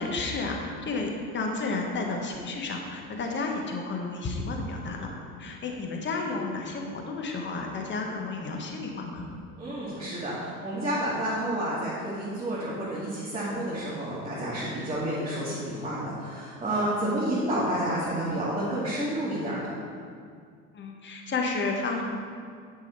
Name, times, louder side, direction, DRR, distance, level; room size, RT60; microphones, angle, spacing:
voice 1, 0.0-5.1 5.4-9.3 20.7-22.0, left 3 dB, 25° left, 1 dB, 1.5 m, -31 dB
voice 2, 9.6-19.8, right 1 dB, 15° right, -10 dB, 2.4 m, -30 dB
10.5 x 6.3 x 4.5 m, 2.2 s
figure-of-eight pair, 70°, 45 cm